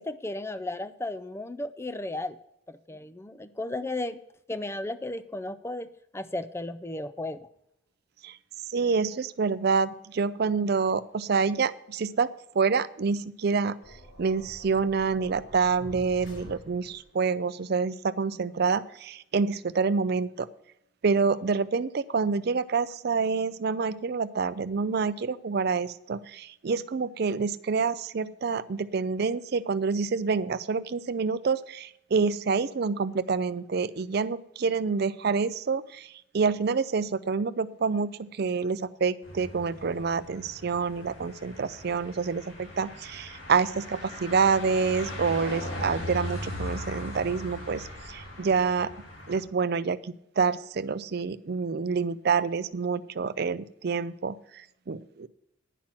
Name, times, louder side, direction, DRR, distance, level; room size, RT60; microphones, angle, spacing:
voice 1, 0.0-2.4 2.7-4.2 4.5-5.9 6.1-7.5, left 2 dB, 10° left, 13 dB, 0.4 m, -34 dB
voice 2, 8.7-13.7 14.2-20.5 21.0-48.9 49.3-55.3, right 5 dB, 50° right, 15 dB, 0.4 m, -27 dB
sound 1, 13.8-17.2, left 1 dB, 65° left, 3.3 m, -47 dB
sound 2, 39.2-49.4, left 1 dB, 85° left, 4.2 m, -39 dB
10.0 x 6.0 x 7.3 m, 0.79 s
head